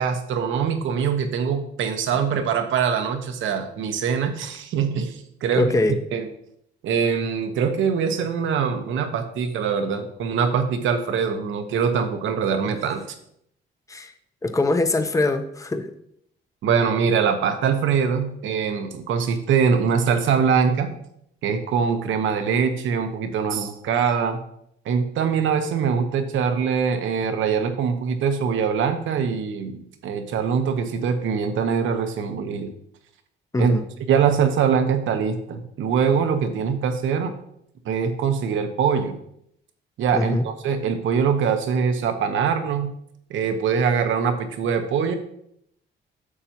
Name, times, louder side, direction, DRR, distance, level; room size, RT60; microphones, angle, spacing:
voice 1, 0.0-5.8 6.1-6.3 6.8-13.0 16.6-20.9 21.4-24.4 24.8-32.7 33.6-33.7 34.1-37.3 37.8-39.2 40.0-42.9 43.3-45.2, right 6 dB, 80° right, 7 dB, 1.1 m, -23 dB
voice 2, 5.6-6.0 13.9-14.1 14.4-15.9 33.5-33.9 40.1-40.4, left 2 dB, 15° left, 7 dB, 0.7 m, -22 dB
9.7 x 6.8 x 2.9 m, 0.73 s
cardioid pair, 90°, 20 cm